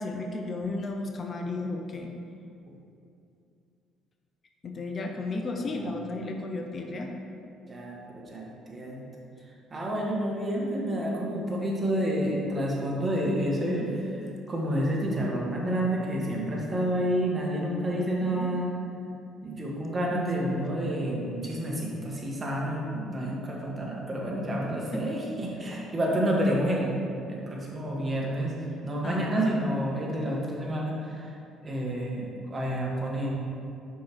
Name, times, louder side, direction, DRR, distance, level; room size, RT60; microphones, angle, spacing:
voice 1, 0.0-2.1 4.6-7.1 13.8-13.9 18.0-18.5 20.1-20.6 24.9-25.2 29.0-29.6, left 2 dB, 40° left, 3 dB, 0.6 m, -34 dB
voice 2, 5.6-6.0 7.7-9.1 9.7-13.9 14.5-18.7 19.4-26.9 27.3-28.5 28.8-31.3 31.6-33.3, right 1 dB, 30° right, -3 dB, 1.5 m, -29 dB
5.5 x 4.8 x 4.5 m, 2.6 s
hypercardioid pair, 50°, 0 cm